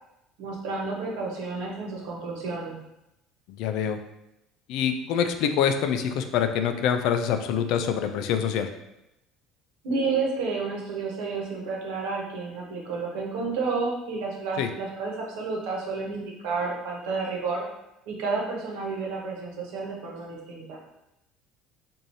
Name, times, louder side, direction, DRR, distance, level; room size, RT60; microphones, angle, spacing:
voice 1, 0.4-2.8 9.8-17.6 18.1-20.8, right 4 dB, 90° right, -2 dB, 1.0 m, -31 dB
voice 2, 3.6-4.0 4.7-8.7 14.6-14.7, left 8 dB, 65° left, 7 dB, 0.3 m, -25 dB
4.7 x 2.6 x 2.7 m, 0.90 s
cardioid pair, 155°, 0 cm